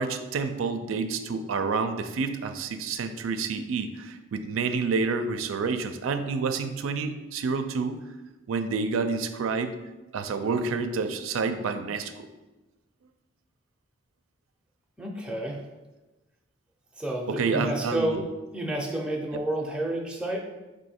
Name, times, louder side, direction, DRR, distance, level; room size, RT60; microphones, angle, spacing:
voice 1, 0.0-8.0 8.5-9.8 10.1-12.2 17.3-18.1, right 4 dB, 90° right, 8 dB, 0.4 m, -29 dB
voice 2, 15.0-15.6 17.0-18.3 18.5-20.4, right 1 dB, 5° right, -1 dB, 0.5 m, -30 dB
4.6 x 2.7 x 4.2 m, 1.1 s
head